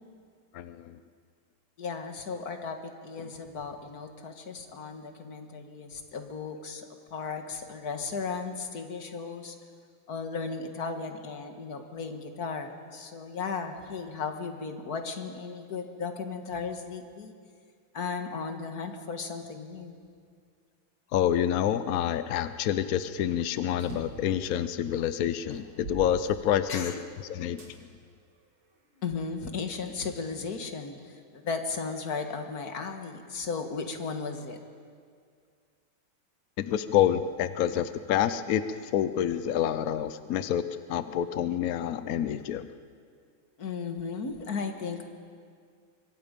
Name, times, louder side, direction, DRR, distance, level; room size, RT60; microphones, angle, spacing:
voice 1, 0.5-1.0 21.1-26.9 27.3-27.6 36.6-40.6 40.9-42.7, left 10 dB, 75° left, 12 dB, 0.8 m, -27 dB
voice 2, 1.8-9.6 10.1-17.3 17.9-20.0 26.7-27.0 29.0-34.6 43.6-45.0, left 5 dB, 50° left, 6 dB, 1.9 m, -35 dB
sound 1, 23.8-24.3 25.0-25.1 25.5-26.9 27.6-27.7 28.5-29.5, right 3 dB, 75° right, 3.8 m, -43 dB
25.0 x 23.0 x 5.3 m, 2.1 s
omnidirectional pair, 2.3 m